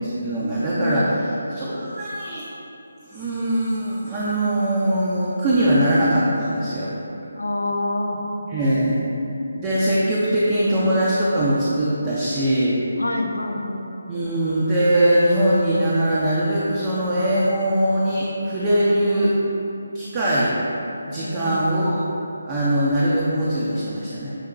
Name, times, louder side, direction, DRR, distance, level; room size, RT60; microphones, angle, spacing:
voice 1, 0.0-1.2 1.5-2.4 3.1-6.9 8.5-9.0 9.5-12.8 14.1-19.3 19.9-20.5 21.1-22.1 22.4-24.3, right 1 dB, 25° right, -8 dB, 0.5 m, -21 dB
voice 2, 0.7-1.1 7.4-8.2 13.0-13.9 21.2-21.7, left 2 dB, 90° left, 2 dB, 0.5 m, -27 dB
6.6 x 2.8 x 2.4 m, 2.9 s
figure-of-eight pair, 155°, 0 cm